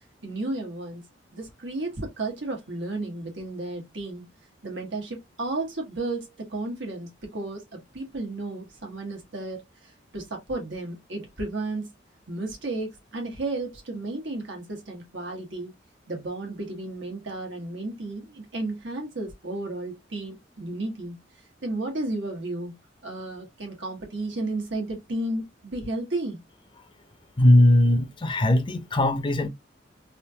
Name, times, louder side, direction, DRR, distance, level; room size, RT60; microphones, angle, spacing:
voice 1, 0.2-1.1 1.3-4.3 4.6-9.6 10.1-11.9 12.3-15.7 16.1-21.2 21.6-22.8 23.0-26.4, right 2 dB, 80° right, 1.5 m, -33 dB
voice 2, 27.4-29.5, left 1 dB, 25° left, 0.5 m, -19 dB
3.5 x 2.4 x 2.8 m
head